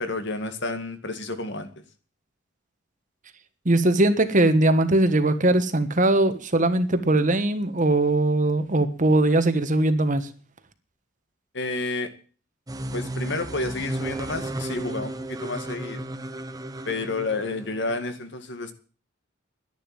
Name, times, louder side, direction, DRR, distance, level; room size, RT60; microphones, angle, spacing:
voice 1, 0.0-1.7 11.5-12.1 12.9-16.1 16.9-18.7, left 3 dB, 60° left, 8 dB, 2.1 m, -30 dB
voice 2, 3.6-10.3, right 2 dB, 40° right, 10 dB, 1.4 m, -20 dB
sound 1, 12.7-18.0, right 1 dB, 20° right, 0.9 m, -34 dB
11.5 x 10.5 x 8.8 m, 0.39 s
head